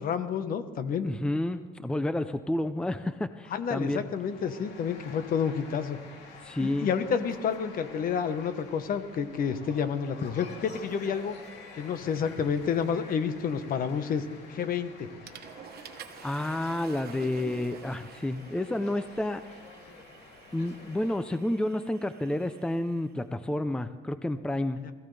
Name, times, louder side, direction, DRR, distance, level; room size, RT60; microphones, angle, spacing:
voice 1, 0.0-1.1 3.5-6.0 6.6-11.4 11.7-14.2 14.5-15.1 24.8-24.9, left 7 dB, 55° left, 10 dB, 1.2 m, -29 dB
voice 2, 1.0-4.0 6.4-6.9 16.2-19.6 20.5-24.8, left 1 dB, 5° left, 11 dB, 0.6 m, -30 dB
sound 1, 3.9-21.2, left 4 dB, 80° left, 3.1 m, -49 dB
Water / Toilet flush, 14.6-14.9 15.3-23.1, right 9 dB, 65° right, 1.3 m, -49 dB
21.0 x 15.0 x 3.4 m, 1.5 s
cardioid pair, 110°, 17 cm